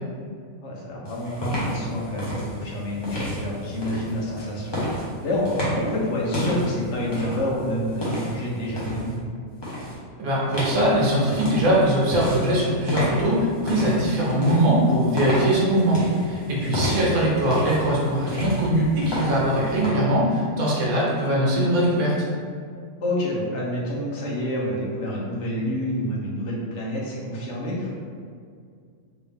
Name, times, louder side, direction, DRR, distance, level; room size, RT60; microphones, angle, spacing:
voice 1, 0.6-9.2 16.5-16.9 23.0-27.9, left 1 dB, 55° left, -4 dB, 1.0 m, -28 dB
sound 1, 1.0-9.2 9.6-9.9 10.5-19.9, equal, 20° left, 0.8 m, -31 dB
voice 2, 10.2-22.1, right 1 dB, 70° right, -5 dB, 1.3 m, -21 dB
3.3 x 2.7 x 3.5 m, 2.2 s
omnidirectional pair, 1.6 m